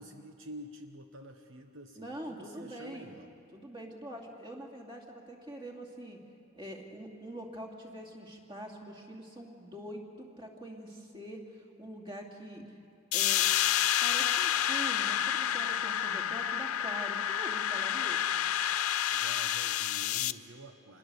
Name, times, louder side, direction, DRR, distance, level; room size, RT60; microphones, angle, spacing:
voice 1, 0.0-3.3 19.1-21.0, right 1 dB, 65° right, 5 dB, 1.1 m, -48 dB
voice 2, 2.0-3.1 3.5-6.2 6.6-12.6 13.1-13.4 14.0-18.5, equal, 25° right, 1 dB, 2.5 m, -44 dB
sound 1, 13.1-20.3, left 11 dB, 85° left, 0.5 m, -29 dB
27.0 x 21.0 x 7.0 m, 2.5 s
head